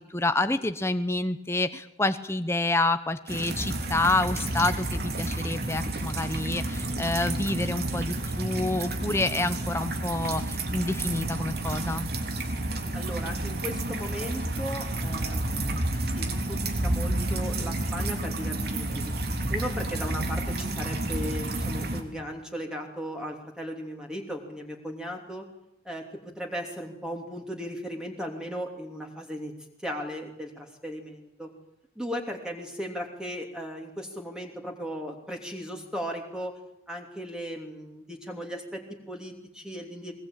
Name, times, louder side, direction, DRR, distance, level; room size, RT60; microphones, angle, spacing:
voice 1, 0.0-12.1, left 2 dB, 15° left, 10 dB, 0.8 m, -28 dB
sound 1, 3.3-22.0, right 1 dB, 55° right, 3.5 m, -30 dB
voice 2, 12.9-19.1 19.5-25.5 25.8-29.5 29.8-31.5 32.0-36.6 36.9-40.1, equal, 5° right, 1 dB, 3.0 m, -37 dB
21.5 x 21.0 x 9.0 m, 0.82 s
head